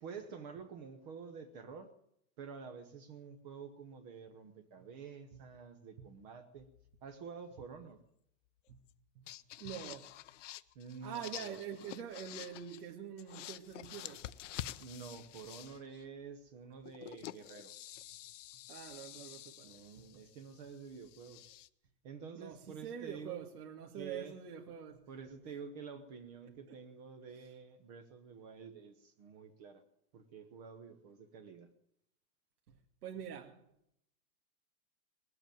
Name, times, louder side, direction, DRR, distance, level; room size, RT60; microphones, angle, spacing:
voice 1, 0.0-1.9 2.4-6.7 7.0-8.0 10.7-11.6 14.5-18.2 19.6-21.5 22.0-23.5 23.9-24.4 25.1-29.8 30.1-31.7, right 6 dB, 30° right, 0.9 m, -49 dB
sound 1, 6.6-7.2 8.9-9.0 9.3-12.9 13.2-16.0 16.9-21.7, left 13 dB, 55° left, 0.7 m, -49 dB
voice 2, 9.6-10.1 11.0-14.3 18.7-20.2 22.4-25.0 26.7-26.8 32.7-32.8 33.0-33.6, right 8 dB, 85° right, 2.0 m, -45 dB
20.0 x 7.9 x 9.1 m
supercardioid pair, 170°, 45 cm